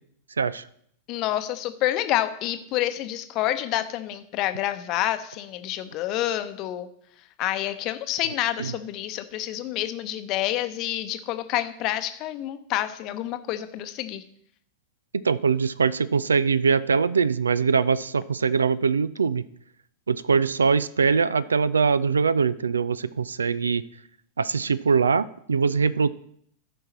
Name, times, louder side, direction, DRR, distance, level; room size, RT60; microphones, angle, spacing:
voice 1, 1.1-6.9 7.4-14.2, left 13 dB, 40° left, 10 dB, 0.8 m, -28 dB
voice 2, 15.1-19.4 20.1-23.8 24.4-26.1, right 5 dB, 75° right, 19 dB, 0.4 m, -22 dB
13.5 x 5.6 x 4.3 m, 0.68 s
figure-of-eight pair, 90°, 0 cm